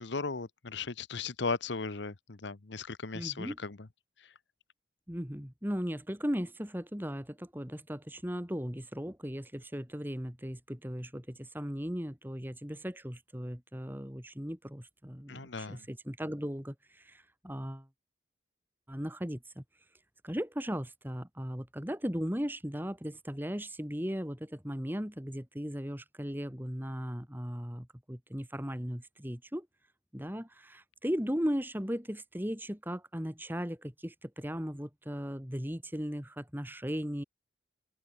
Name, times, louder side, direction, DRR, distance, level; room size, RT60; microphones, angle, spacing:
voice 1, 0.0-3.8 4.2-4.3 15.3-15.9, left 4 dB, 70° left, 1.0 m, -37 dB
voice 2, 3.1-3.6 5.1-17.9 18.9-19.6 20.2-29.7 30.1-37.2, equal, 10° right, 2.5 m, -37 dB
open air
head